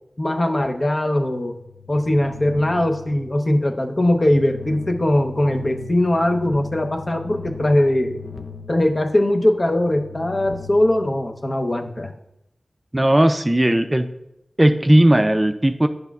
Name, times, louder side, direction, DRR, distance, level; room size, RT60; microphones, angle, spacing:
voice 1, 0.2-1.6 1.9-8.2 8.7-12.1, left 1 dB, 40° left, 4 dB, 0.8 m, -20 dB
sound 1, 1.2-11.9, left 6 dB, 75° left, 0.5 m, -40 dB
voice 2, 12.9-14.1 14.6-15.9, right 1 dB, 20° right, 7 dB, 0.4 m, -16 dB
10.5 x 6.7 x 2.4 m, 0.83 s
wide cardioid pair, 50°, 0 cm